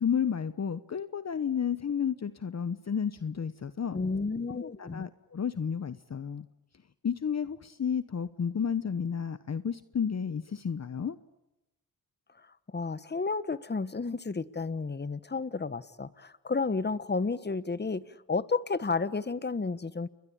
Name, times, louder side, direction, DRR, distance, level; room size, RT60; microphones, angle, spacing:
voice 1, 0.0-4.0 4.5-6.5 7.0-11.2, left 7 dB, 45° left, 13 dB, 1.1 m, -32 dB
voice 2, 3.9-5.1 12.4-20.1, left 4 dB, 25° left, 15 dB, 1.4 m, -32 dB
29.5 x 22.0 x 8.8 m, 0.93 s
cardioid pair, 60°, 37 cm